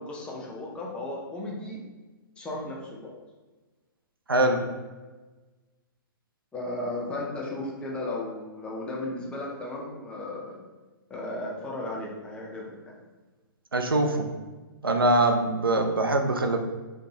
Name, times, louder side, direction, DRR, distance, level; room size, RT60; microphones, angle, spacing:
voice 1, 0.0-1.8 2.4-3.1 6.5-10.6 11.1-13.0, left 2 dB, 10° left, -3 dB, 0.5 m, -35 dB
voice 2, 4.3-4.6 13.7-14.3 14.8-16.6, right 1 dB, 80° right, 5 dB, 0.5 m, -23 dB
3.6 x 2.2 x 2.9 m, 1.2 s
figure-of-eight pair, 120°, 12 cm